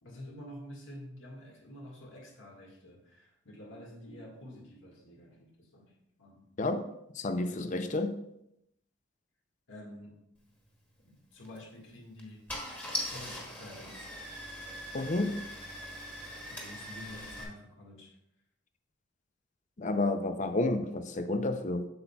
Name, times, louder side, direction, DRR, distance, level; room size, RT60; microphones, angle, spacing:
voice 1, 0.0-5.9 6.2-6.5 9.7-10.2 11.3-12.4 13.0-14.1 16.5-18.2, left 1 dB, 80° left, -1 dB, 1.8 m, -48 dB
voice 2, 6.6-6.9 7.1-8.2 14.9-15.5 19.8-21.9, left 2 dB, 40° left, 8 dB, 0.5 m, -30 dB
Car / Engine starting, 11.4-11.6 12.2-12.3 12.5-17.4, equal, 10° left, 1.4 m, -41 dB
7.8 x 7.2 x 2.3 m, 0.81 s
head